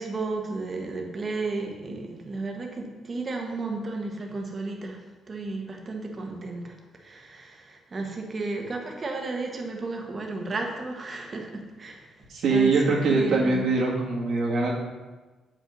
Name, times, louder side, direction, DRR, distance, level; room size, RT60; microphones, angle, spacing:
voice 1, 0.0-12.1 12.5-13.7, right 3 dB, 35° right, 1 dB, 1.3 m, -33 dB
voice 2, 12.3-14.7, right 3 dB, 70° right, -3 dB, 1.8 m, -23 dB
7.3 x 5.4 x 4.0 m, 1.2 s
cardioid pair, 90°, 0 cm